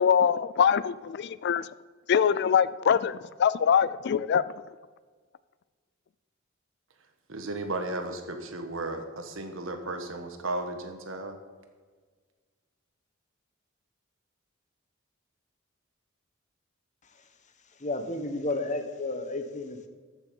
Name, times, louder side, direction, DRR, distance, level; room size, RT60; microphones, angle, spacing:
voice 1, 0.0-1.7 2.1-4.4, left 7 dB, 55° left, 17 dB, 0.4 m, -23 dB
voice 2, 7.3-11.4, right 2 dB, 75° right, 6 dB, 1.4 m, -34 dB
voice 3, 17.8-19.9, left 2 dB, 40° left, 8 dB, 1.0 m, -32 dB
14.0 x 6.7 x 5.3 m, 1.5 s
head